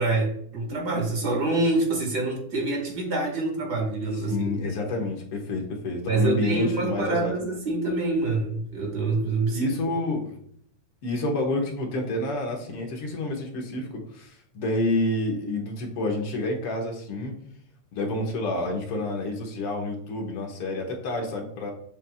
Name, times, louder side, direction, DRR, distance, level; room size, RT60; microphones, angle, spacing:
voice 1, 0.0-4.5 6.1-9.7, right 2 dB, 40° right, 2 dB, 1.8 m, -26 dB
voice 2, 4.3-7.3 9.5-10.4 11.0-13.9 14.1-17.3 17.9-21.7, left 2 dB, 50° left, 0 dB, 2.0 m, -29 dB
7.5 x 7.1 x 2.4 m, 0.64 s
omnidirectional pair, 3.8 m